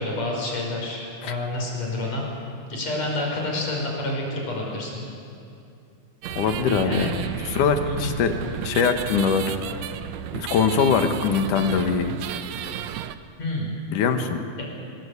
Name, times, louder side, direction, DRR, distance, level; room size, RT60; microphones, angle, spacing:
voice 1, 0.0-2.2 2.7-5.0 6.8-7.1 7.8-8.1 13.4-13.7, left 2 dB, 60° left, -1 dB, 6.4 m, -28 dB
sound 1, 6.2-13.2, right 10 dB, 70° right, 1.9 m, -33 dB
voice 2, 6.4-7.1 7.5-8.3 8.6-9.5 10.3-12.1 13.9-14.4, left 6 dB, 85° left, 6 dB, 3.0 m, -22 dB
25.0 x 21.0 x 8.3 m, 2.5 s
omnidirectional pair, 3.5 m